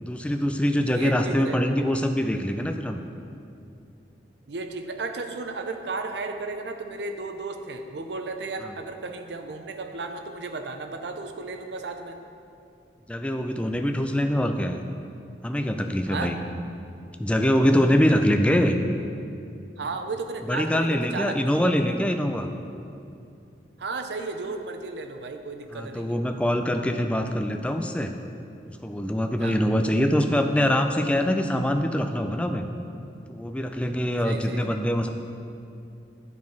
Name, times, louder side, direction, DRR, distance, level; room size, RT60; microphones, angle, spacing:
voice 1, 0.0-3.0 8.6-8.7 13.1-14.8 15.4-16.4 17.2-18.8 20.4-22.5 25.7-28.1 28.6-32.7 33.3-35.1, equal, 5° left, 6 dB, 0.3 m, -24 dB
voice 2, 0.9-1.9 4.5-12.2 16.1-16.3 19.8-22.0 23.8-26.2 29.4-29.6 34.2-34.8, right 3 dB, 80° right, 6 dB, 0.6 m, -34 dB
9.6 x 4.7 x 4.6 m, 2.6 s
head